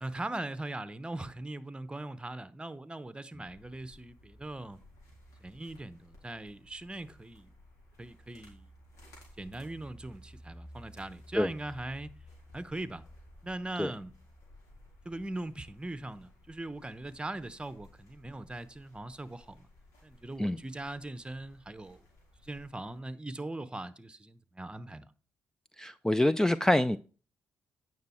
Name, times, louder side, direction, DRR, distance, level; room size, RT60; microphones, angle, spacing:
voice 1, 0.0-4.8 5.4-7.5 8.0-8.7 9.4-12.1 12.5-13.0 13.4-14.1 15.0-19.7 20.0-22.1 22.4-25.1, right 2 dB, 20° right, 1.0 m, -40 dB
sound 1, 3.4-23.0, left 1 dB, 85° left, 4.0 m, -56 dB
voice 2, 25.8-27.0, left 1 dB, 10° left, 0.5 m, -26 dB
9.4 x 6.3 x 4.5 m
supercardioid pair, 55°, 5 cm